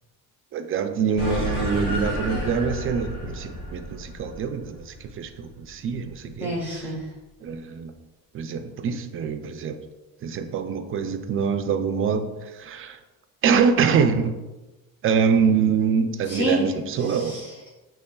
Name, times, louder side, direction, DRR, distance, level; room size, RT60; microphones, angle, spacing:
voice 1, 0.5-4.9 5.2-6.5 7.4-7.9 8.3-9.8 10.2-13.0 13.4-14.4 15.0-17.3, right 6 dB, 40° right, 7 dB, 0.4 m, -24 dB
sound 1, 1.2-5.9, left 1 dB, 85° left, 1.3 m, -31 dB
voice 2, 6.4-7.0 16.3-17.7, equal, 30° left, -3 dB, 1.4 m, -29 dB
6.6 x 3.1 x 2.3 m, 1.1 s
cardioid pair, 125°, 33 cm